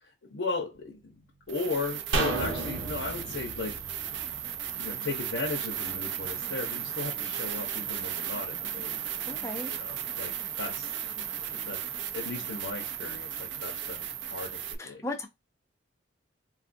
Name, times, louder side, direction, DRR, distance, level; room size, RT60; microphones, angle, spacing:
voice 1, 0.0-1.2 1.5-3.8 4.7-9.0 9.7-10.3 10.6-10.9 11.1-11.2 11.5-11.8 12.1-15.0, left 3 dB, 85° left, 0.8 m, -36 dB
sound 1, 0.8-0.9 1.5-14.7, right 10 dB, 70° right, 0.4 m, -35 dB
sound 2, 2.1-5.5 5.8-5.9, right 3 dB, 85° right, 0.9 m, -33 dB
voice 2, 9.3-9.8 14.8-15.3, left 1 dB, 15° left, 0.5 m, -36 dB
3.7 x 2.4 x 2.5 m
head